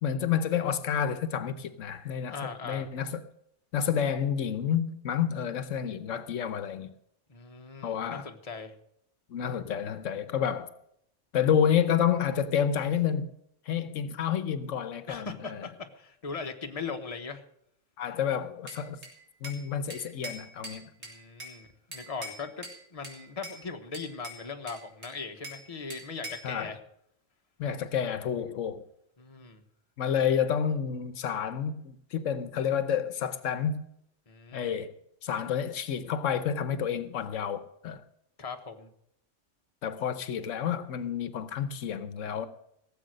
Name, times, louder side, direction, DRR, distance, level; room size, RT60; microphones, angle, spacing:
voice 1, 0.0-2.4 2.7-3.2 3.7-6.9 7.8-8.3 9.3-10.7 11.3-13.3 13.7-15.7 18.0-19.0 19.4-20.9 26.4-26.7 27.6-28.8 30.0-33.8 34.5-34.9 35.2-38.0 39.8-42.5, left 8 dB, 85° left, 1.2 m, -29 dB
voice 2, 2.3-2.9 7.3-8.7 15.1-17.4 21.0-26.8 29.2-29.6 34.3-34.7 38.4-38.9, left 4 dB, 30° left, 1.2 m, -39 dB
Bell / Glass, 18.7-19.6 19.9-21.6 21.9-22.8 23.0-23.6 23.9-25.6 25.9-26.5, right 1 dB, 85° right, 3.7 m, -43 dB
17.0 x 7.8 x 6.4 m
omnidirectional pair, 1.3 m